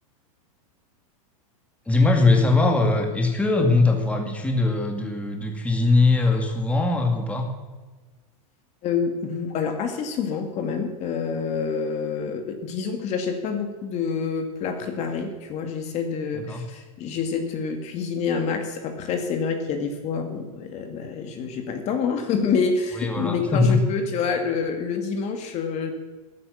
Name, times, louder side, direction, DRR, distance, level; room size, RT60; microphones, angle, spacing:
voice 1, 1.9-7.5 16.3-16.6 22.9-23.8, left 3 dB, 5° left, 3 dB, 2.2 m, -21 dB
voice 2, 8.8-25.9, left 5 dB, 35° left, 6 dB, 2.0 m, -27 dB
14.0 x 12.0 x 7.0 m, 1.3 s
supercardioid pair, 130°, 18 cm